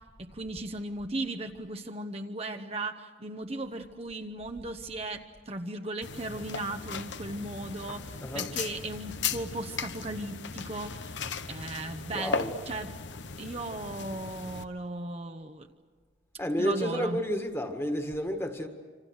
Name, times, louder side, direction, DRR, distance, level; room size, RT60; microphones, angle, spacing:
voice 1, 0.3-11.2 11.5-12.4 12.7-12.9 13.4-15.7 16.6-17.2, right 2 dB, 35° right, 0.9 m, -36 dB
sound 1, 6.0-14.6, left 5 dB, 80° left, 1.0 m, -37 dB
voice 2, 8.2-8.5 12.1-12.6 16.4-18.7, equal, 15° left, 1.8 m, -31 dB
27.0 x 26.5 x 6.5 m
head